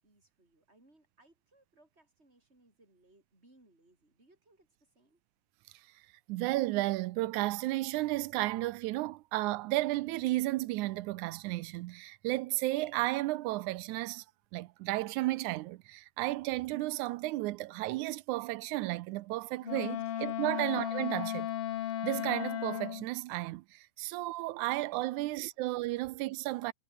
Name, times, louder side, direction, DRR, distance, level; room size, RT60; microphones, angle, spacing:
voice 1, 0.0-5.2 20.0-20.1 24.0-24.1 25.2-25.3, right 2 dB, 20° right, 8.1 m, -66 dB
voice 2, 6.3-14.3 14.5-21.5 22.0-26.7, right 18 dB, 80° right, 2.0 m, -33 dB
Wind instrument woodwind instrument, 19.6-23.1, left 11 dB, 60° left, 1.7 m, -35 dB
omnidirectional pair, 3.6 m